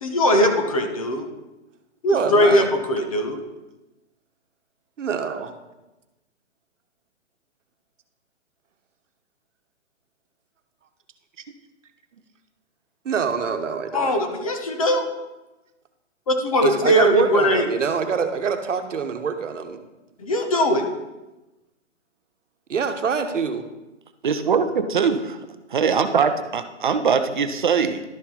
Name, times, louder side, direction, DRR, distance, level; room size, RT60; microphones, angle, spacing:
voice 1, 0.0-1.2 2.0-3.4 13.9-15.1 16.3-17.7 20.2-20.9, left 1 dB, 30° left, 5 dB, 0.7 m, -20 dB
voice 2, 2.1-2.7 5.0-5.5 13.0-14.1 16.6-19.8 22.7-23.6, right 6 dB, 80° right, 7 dB, 1.1 m, -25 dB
voice 3, 24.2-25.4 25.7-28.0, right 6 dB, 40° right, 9 dB, 0.6 m, -21 dB
12.0 x 4.3 x 4.3 m, 1.0 s
hypercardioid pair, 170°, 37 cm